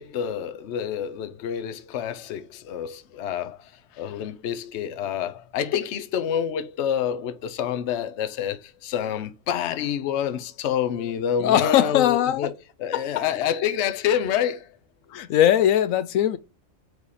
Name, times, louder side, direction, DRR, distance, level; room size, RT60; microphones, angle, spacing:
voice 1, 0.0-12.5 12.8-14.7, left 9 dB, 65° left, 0.9 m, -28 dB
voice 2, 11.4-12.5 12.9-13.2 15.1-16.4, left 11 dB, 85° left, 1.0 m, -20 dB
4.9 x 4.2 x 4.8 m
omnidirectional pair, 1.4 m